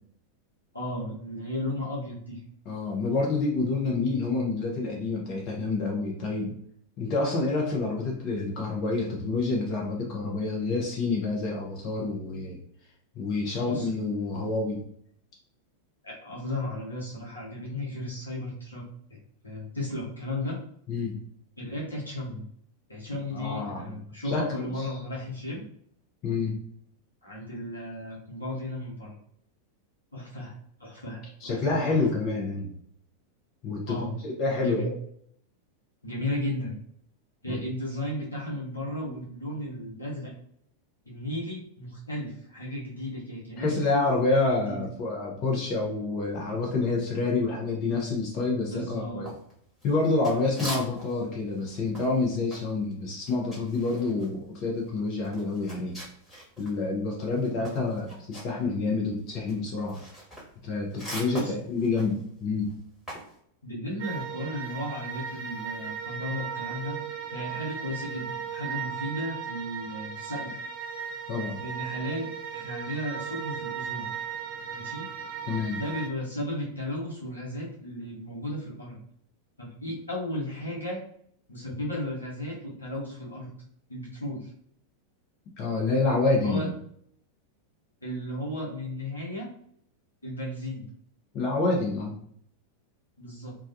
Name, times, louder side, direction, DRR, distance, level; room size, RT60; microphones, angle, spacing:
voice 1, 0.7-2.4 13.6-13.9 16.0-19.2 19.4-20.6 21.6-22.4 22.9-25.6 27.2-29.2 30.1-30.5 30.8-31.6 31.9-32.0 33.9-34.1 34.6-34.9 36.0-36.8 37.4-40.3 41.1-44.0 44.3-44.8 48.7-49.3 50.5-50.8 61.3-61.5 63.6-67.0 67.3-70.6 71.6-74.1 74.7-75.0 75.7-79.0 79.6-81.0 81.5-83.5 83.9-84.5 86.4-86.7 88.0-89.5 90.2-90.9 93.2-93.6, left 1 dB, 80° left, -5 dB, 0.9 m, -35 dB
voice 2, 2.7-6.6 7.0-12.6 13.2-14.8 20.9-21.2 23.3-23.9 24.2-24.9 26.2-26.6 31.4-32.7 33.6-34.0 34.2-34.9 37.5-37.6 43.6-49.4 49.8-56.0 56.6-60.0 60.6-62.7 71.3-71.6 75.5-75.8 85.6-86.7 91.3-92.2, left 3 dB, 40° left, -2 dB, 0.6 m, -28 dB
sound 1, 49.2-51.3 51.5-56.8 57.1-63.4, equal, 10° left, 1.2 m, -42 dB
sound 2, 64.0-76.1, right 7 dB, 55° right, 0.4 m, -36 dB
2.3 x 2.2 x 2.5 m, 0.66 s
figure-of-eight pair, 90°, 0 cm